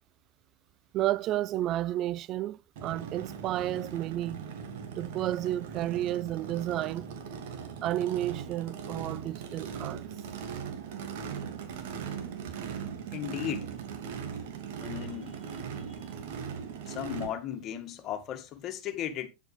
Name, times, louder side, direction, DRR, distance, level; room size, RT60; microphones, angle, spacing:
voice 1, 0.9-4.4 5.0-7.1 7.8-10.0, right 14 dB, 50° right, 0.4 m, -31 dB
Race car auto racing / Idling / Accelerating revving vroom, 2.8-17.3, right 7 dB, 70° right, 2.4 m, -39 dB
voice 2, 13.1-13.7 14.8-15.4 16.0-16.1 16.9-19.3, left 10 dB, 45° left, 2.0 m, -36 dB
9.8 x 8.0 x 3.5 m
hypercardioid pair, 80°, 0 cm